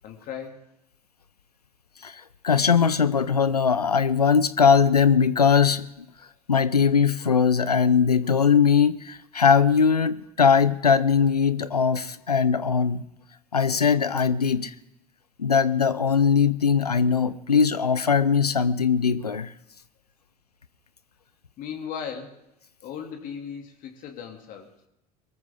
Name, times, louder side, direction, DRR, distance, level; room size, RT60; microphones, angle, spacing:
voice 1, 0.0-0.6 21.6-22.5 22.8-24.7, left 7 dB, 45° left, 3 dB, 2.7 m, -37 dB
voice 2, 2.0-5.9 6.5-13.0 13.5-14.7 15.4-19.5, left 6 dB, 85° left, 16 dB, 0.6 m, -20 dB
23.0 x 14.0 x 3.7 m, 0.82 s
figure-of-eight pair, 70°, 20 cm